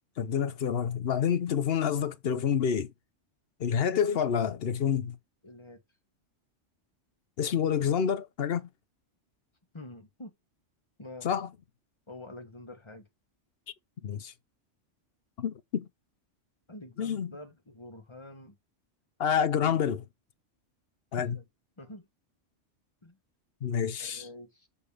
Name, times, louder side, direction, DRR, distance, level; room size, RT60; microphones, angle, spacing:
voice 1, 0.2-2.9 3.6-5.2 7.4-8.7 11.2-11.5 14.0-14.3 15.4-15.9 17.0-17.3 19.2-20.0 21.1-21.4 23.6-24.3, left 8 dB, 55° left, 0.9 m, -28 dB
voice 2, 5.4-5.8 9.7-10.3 11.0-11.3 12.1-13.1 16.7-18.5 21.2-21.4 21.8-22.0 23.0-23.2 24.0-24.7, left 2 dB, 25° left, 1.5 m, -46 dB
7.1 x 4.0 x 4.9 m
omnidirectional pair, 1.2 m